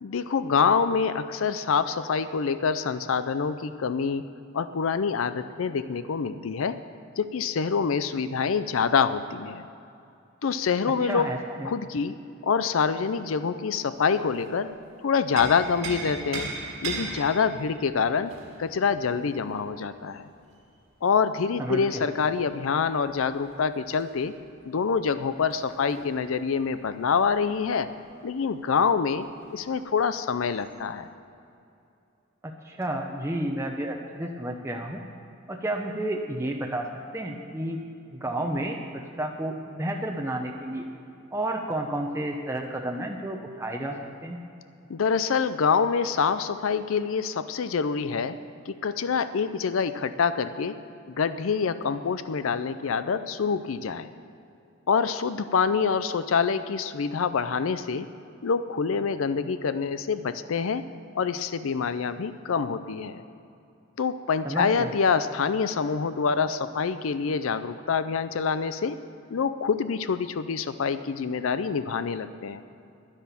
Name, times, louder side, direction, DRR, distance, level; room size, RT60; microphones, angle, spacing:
voice 1, 0.0-4.2 4.5-6.8 7.2-9.7 10.4-11.3 11.6-12.1 12.4-14.7 15.0-16.5 16.8-18.3 18.6-20.2 21.0-24.3 24.7-27.9 28.2-29.3 29.5-31.1 44.9-48.4 48.7-50.8 51.1-54.1 54.9-58.1 58.4-60.8 61.1-63.2 64.0-69.0 69.3-72.6, left 5 dB, 75° left, 12 dB, 0.5 m, -26 dB
voice 2, 11.0-11.7 21.6-22.1 32.4-35.0 35.5-36.9 37.1-37.8 38.1-38.8 39.2-40.8 41.3-44.4 64.4-64.9, right 1 dB, 15° right, 1 dB, 0.7 m, -31 dB
sound 1, 14.0-14.7 15.1-20.6 22.5-28.3 28.6-28.7 29.0-29.8 30.5-30.7, right 3 dB, 75° right, 2.1 m, -39 dB
10.5 x 10.0 x 7.0 m, 2.6 s
head